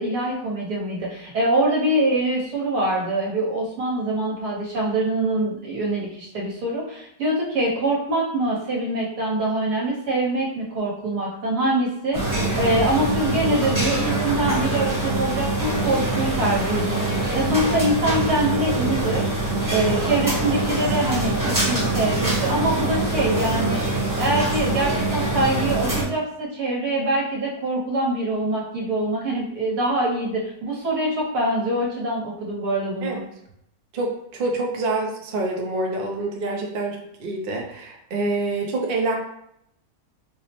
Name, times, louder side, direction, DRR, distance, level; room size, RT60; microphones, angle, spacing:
voice 1, 0.0-12.2 12.6-19.3 19.7-23.8 24.2-33.2, right 1 dB, 80° right, -4 dB, 1.6 m, -24 dB
sound 1, 12.1-26.0, right 2 dB, 15° right, 0.8 m, -24 dB
voice 2, 33.9-39.2, right 2 dB, 55° right, 0 dB, 0.6 m, -26 dB
4.9 x 2.0 x 2.9 m, 0.75 s
omnidirectional pair, 1.7 m